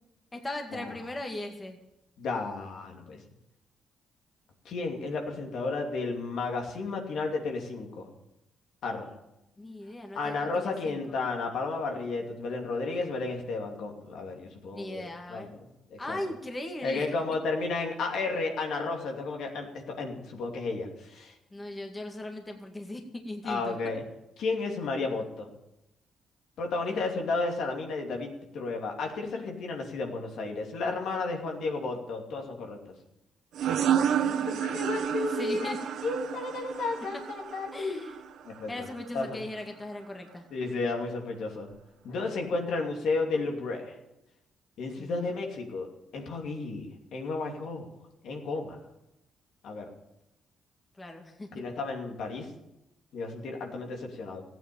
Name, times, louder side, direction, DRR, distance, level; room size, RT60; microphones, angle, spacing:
voice 1, 0.3-1.8 9.6-11.0 14.7-15.5 16.0-17.1 21.5-23.8 26.9-27.2 34.2-34.6 35.3-35.8 37.7-38.2 38.7-40.4 45.0-45.4 51.0-51.6, left 1 dB, 20° left, 3 dB, 2.1 m, -39 dB
voice 2, 2.2-3.2 4.6-8.1 8.8-9.1 10.1-16.2 16.8-21.3 23.4-24.0 24.4-25.5 26.6-32.8 34.6-35.8 36.0-38.1 38.4-38.9 39.1-39.4 40.5-41.7 42.0-44.0 44.8-45.9 46.1-47.9 48.2-48.8 49.6-49.9 51.5-52.5 53.1-54.4, left 3 dB, 75° left, 2 dB, 2.7 m, -33 dB
sound 1, 33.5-38.9, right 9 dB, 75° right, 1.1 m, -30 dB
14.5 x 9.1 x 8.5 m, 0.91 s
cardioid pair, 90°, 0 cm